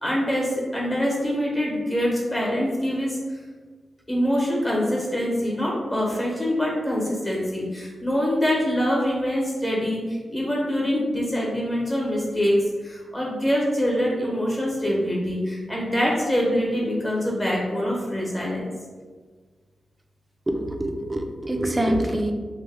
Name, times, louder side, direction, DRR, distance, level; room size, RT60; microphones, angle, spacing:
voice 1, 0.0-3.4 4.1-12.6 12.8-18.7, equal, 20° left, -4 dB, 1.0 m, -24 dB
voice 2, 20.5-22.3, right 1 dB, 20° right, 4 dB, 0.4 m, -25 dB
3.0 x 2.1 x 3.4 m, 1.5 s
wide cardioid pair, 90°, 0 cm